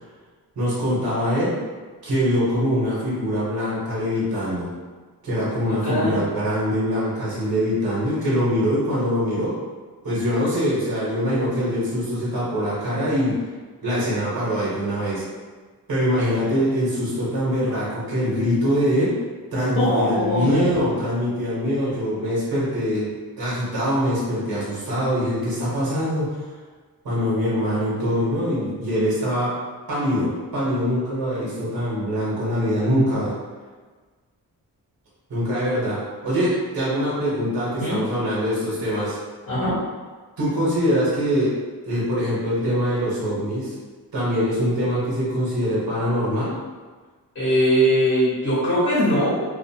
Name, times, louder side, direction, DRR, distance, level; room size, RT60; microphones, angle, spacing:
voice 1, 0.6-1.5 2.0-4.7 5.2-9.5 10.0-13.4 13.8-15.2 15.9-19.2 19.5-23.1 23.4-26.4 27.0-29.6 29.9-33.3 35.3-36.0 36.2-39.2 40.4-41.5 41.8-43.7 44.1-46.6, equal, 75° right, -8 dB, 1.1 m, -23 dB
voice 2, 5.8-6.2 19.7-20.6 37.8-38.0 39.5-39.8 47.3-49.4, equal, 45° left, -12 dB, 1.3 m, -21 dB
2.5 x 2.3 x 2.7 m, 1.4 s
wide cardioid pair, 170°, 37 cm